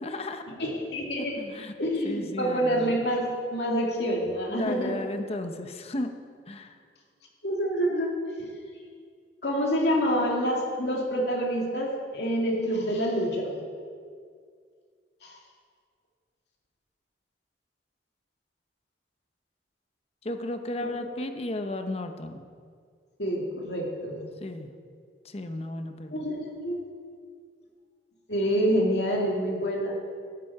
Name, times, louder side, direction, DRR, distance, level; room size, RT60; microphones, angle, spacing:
voice 1, 0.0-0.4 1.4-1.7 2.0-3.0 4.5-6.1 6.5-6.8 20.2-22.4 24.4-24.7 25.2-26.2, left 2 dB, 35° left, 7 dB, 0.8 m, -34 dB
voice 2, 0.6-1.3 1.8-4.9 7.4-8.1 8.4-8.5 9.4-13.5 15.2-15.3 20.8-20.9 23.2-24.2 26.1-26.8 28.3-30.0, equal, 70° left, -1 dB, 2.5 m, -27 dB
12.5 x 11.5 x 4.8 m, 2.1 s
head